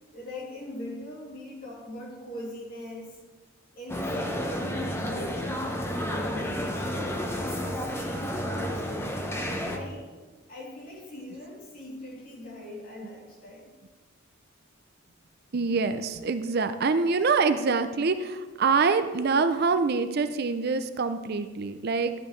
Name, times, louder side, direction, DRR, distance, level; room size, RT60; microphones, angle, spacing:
voice 1, 0.1-3.2 3.7-6.8 7.7-8.9 9.5-10.1 10.5-13.7, left 1 dB, 45° left, -4 dB, 2.9 m, -41 dB
sound 1, 3.9-9.8, equal, 10° left, 0.8 m, -31 dB
voice 2, 15.5-22.1, right 4 dB, 50° right, 10 dB, 0.5 m, -25 dB
12.5 x 9.7 x 3.2 m, 1.3 s
head